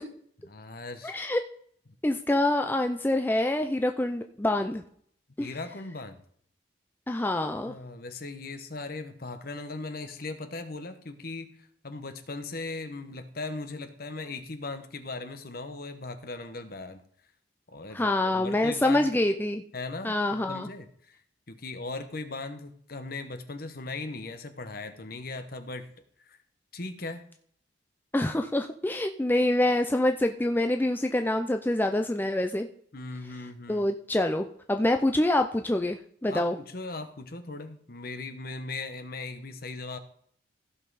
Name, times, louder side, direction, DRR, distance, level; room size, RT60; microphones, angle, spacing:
voice 1, 0.5-1.2 5.4-6.2 7.6-17.0 17.7-19.1 19.7-21.2 21.5-25.9 26.2-26.4 26.7-27.2 32.9-33.9 36.3-40.0, left 3 dB, 50° left, 8 dB, 1.0 m, -38 dB
voice 2, 1.0-1.4 2.0-4.8 5.4-5.5 7.1-7.7 17.9-19.6 20.0-20.7 28.1-32.7 33.7-36.6, left 1 dB, 10° left, 5 dB, 0.4 m, -26 dB
15.5 x 5.6 x 4.1 m, 0.62 s
head